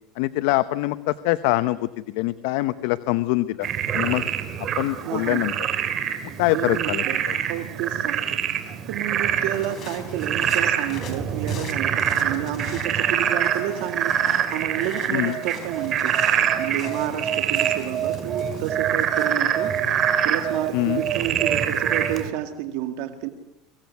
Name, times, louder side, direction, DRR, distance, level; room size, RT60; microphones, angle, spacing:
voice 1, 0.2-4.2 4.8-5.5 6.4-7.3 15.1-15.3 20.7-21.0, left 17 dB, 75° left, 13 dB, 0.9 m, -24 dB
Frog, 3.6-22.3, right 9 dB, 40° right, 3.0 m, -25 dB
voice 2, 5.1-5.4 6.5-14.2 14.5-16.2 16.6-19.7 20.2-23.3, right 12 dB, 70° right, 7 dB, 2.0 m, -30 dB
sound 1, 9.5-22.2, left 6 dB, 40° left, 3.5 m, -43 dB
24.0 x 17.0 x 9.4 m, 0.90 s
supercardioid pair, 135°, 0 cm